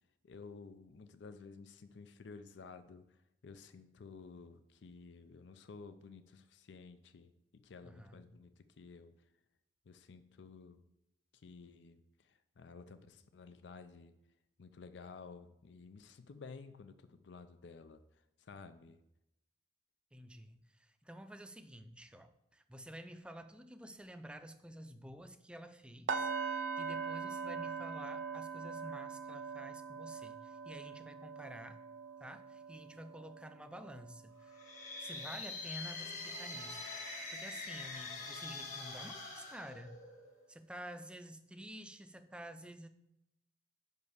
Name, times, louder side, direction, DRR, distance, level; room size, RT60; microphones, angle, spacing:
voice 1, 0.2-9.1 9.9-10.8 11.3-14.1 14.6-19.0, left 4 dB, 75° left, 11 dB, 0.5 m, -53 dB
voice 2, 7.8-8.3 20.1-31.8 32.2-34.6 35.0-36.9 37.3-40.0 40.5-42.9, right 1 dB, 5° right, 9 dB, 0.4 m, -50 dB
sound 1, 26.1-36.0 36.3-36.6 37.1-37.2, right 5 dB, 85° right, 0.6 m, -42 dB
sound 2, 34.5-40.4, left 3 dB, 45° left, 1.6 m, -45 dB
5.4 x 5.3 x 6.5 m, 0.84 s
head